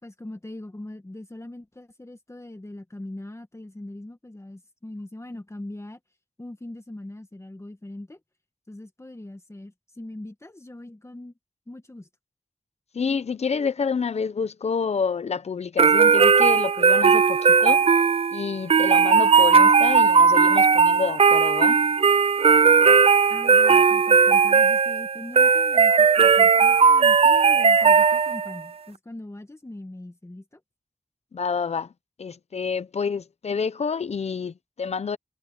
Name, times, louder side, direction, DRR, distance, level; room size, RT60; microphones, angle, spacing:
voice 1, 0.0-6.0 6.4-8.2 8.7-11.3 11.7-12.1 23.3-30.6, left 1 dB, 25° left, 1.8 m, -41 dB
voice 2, 12.9-17.8 18.3-21.8 31.3-31.9 32.2-35.2, left 5 dB, 85° left, 0.8 m, -28 dB
sound 1, 15.8-28.6, right 5 dB, 65° right, 0.4 m, -17 dB
cardioid pair, 45°, 11 cm